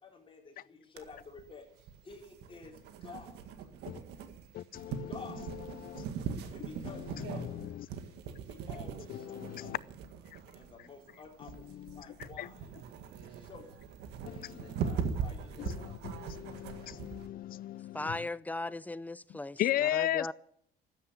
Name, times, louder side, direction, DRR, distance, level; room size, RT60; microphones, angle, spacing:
voice 1, 0.0-3.4 4.9-5.4 6.5-7.6 8.5-9.7 10.5-12.7 13.2-13.7 14.3-15.6, left 4 dB, 30° left, 4.5 m, -51 dB
sound 1, 1.0-17.3, right 6 dB, 80° right, 1.8 m, -41 dB
voice 2, 4.5-6.1 6.6-6.7 6.9-7.9 9.1-9.8 11.4-12.5 14.3-14.7 15.6-18.3 19.3-20.3, left 13 dB, 60° left, 0.6 m, -37 dB
voice 3, 17.9-19.6 19.9-20.3, left 2 dB, 10° left, 0.6 m, -37 dB
13.0 x 10.0 x 9.8 m
cardioid pair, 110°, 17 cm